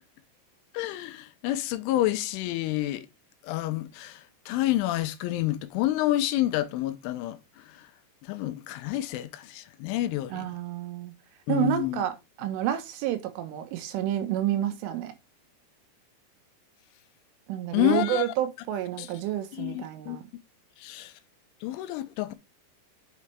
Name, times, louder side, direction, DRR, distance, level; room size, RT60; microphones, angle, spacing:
voice 1, 0.7-3.1 3.4-7.9 8.2-10.5 11.5-12.0 17.7-18.3 19.0-19.1 19.5-20.2 20.8-21.1 21.6-22.3, left 15 dB, 85° left, 3.2 m, -29 dB
voice 2, 10.3-11.1 11.5-15.1 17.5-20.2, right 12 dB, 85° right, 3.7 m, -29 dB
8.4 x 6.7 x 3.4 m
omnidirectional pair, 5.6 m